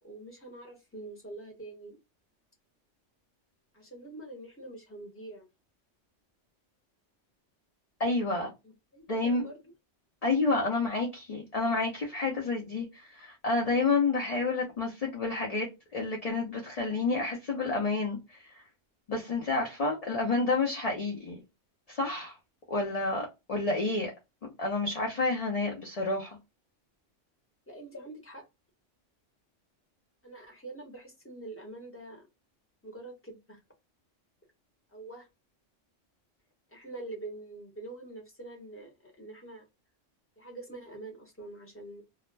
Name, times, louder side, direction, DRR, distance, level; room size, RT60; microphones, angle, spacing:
voice 1, 0.0-2.0 3.7-5.5 8.6-9.7 27.7-28.4 30.2-32.3 32.8-33.6 34.9-35.3 36.7-39.6 40.4-42.0, right 2 dB, 10° left, 0.8 m, -45 dB
voice 2, 8.0-8.5 9.1-9.4 10.2-18.6 19.1-21.4 21.9-22.3 22.7-24.1 24.6-26.4, left 3 dB, 40° left, 0.5 m, -29 dB
2.4 x 2.0 x 3.1 m
omnidirectional pair, 1.3 m